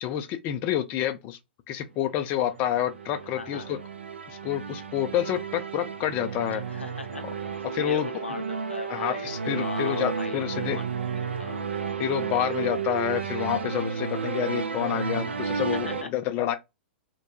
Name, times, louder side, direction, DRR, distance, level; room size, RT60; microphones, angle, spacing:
voice 1, 0.0-1.4 1.7-3.8 4.3-6.6 7.6-8.1 8.9-10.8 12.0-16.6, left 11 dB, 35° left, 0.3 m, -28 dB
sound 1, 2.2-16.0, right 6 dB, 80° right, 0.5 m, -32 dB
voice 2, 3.3-3.7 6.5-10.8 11.1-11.6 15.7-16.1, left 3 dB, 90° left, 0.5 m, -39 dB
2.2 x 2.1 x 2.9 m
figure-of-eight pair, 110°, 6 cm